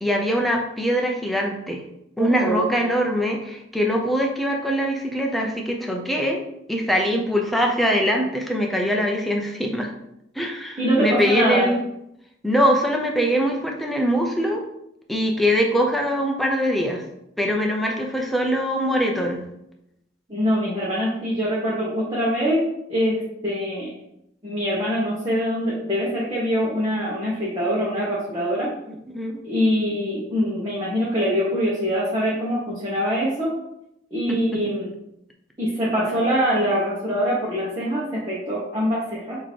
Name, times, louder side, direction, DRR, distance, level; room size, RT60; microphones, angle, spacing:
voice 1, 0.0-1.8 2.2-6.4 6.7-9.9 10.4-11.8 12.4-14.6 15.1-17.0 17.4-19.4 29.1-29.4 34.3-34.7, equal, ahead, 0 dB, 0.8 m, -22 dB
voice 2, 2.2-2.7 10.8-11.7 20.3-23.9 24.4-28.7 29.4-33.5 34.1-34.9 35.6-39.4, equal, 25° right, -8 dB, 1.4 m, -24 dB
6.7 x 3.1 x 4.6 m, 0.80 s
head